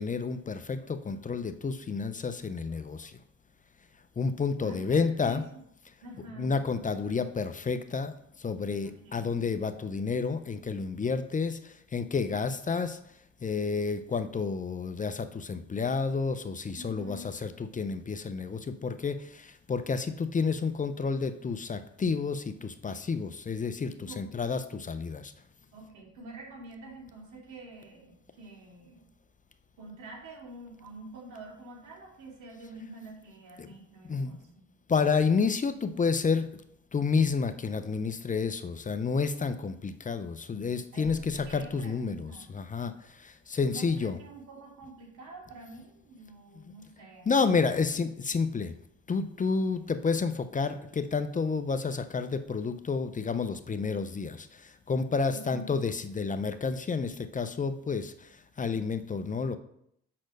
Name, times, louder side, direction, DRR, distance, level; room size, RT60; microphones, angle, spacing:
voice 1, 0.0-3.2 4.2-5.4 6.4-13.0 13.4-25.3 33.6-33.7 34.0-34.4 34.9-36.5 36.9-44.2 46.6-46.7 47.3-48.7 49.1-58.3 58.6-59.6, left 5 dB, 25° left, 10 dB, 0.6 m, -30 dB
voice 2, 4.6-5.6 6.0-6.5 8.8-9.3 16.7-17.3 24.1-24.3 25.7-29.0 29.8-34.6 40.9-42.5 43.6-47.8 55.3-55.7, right 2 dB, 80° right, -2 dB, 2.6 m, -47 dB
6.5 x 4.3 x 6.3 m, 0.72 s
cardioid pair, 90°, 30 cm